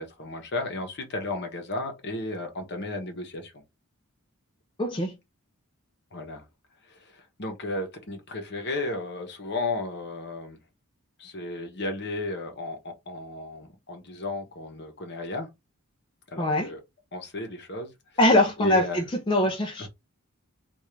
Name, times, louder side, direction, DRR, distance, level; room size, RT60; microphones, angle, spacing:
voice 1, 0.0-3.6 6.1-6.4 6.8-10.6 11.2-15.5 16.3-16.8 17.1-17.9 18.6-19.0 19.8-19.9, left 2 dB, 50° left, 1.0 m, -34 dB
voice 2, 4.8-5.1 16.4-16.7 18.2-19.9, left 1 dB, 20° left, 0.6 m, -23 dB
3.5 x 2.5 x 3.2 m
head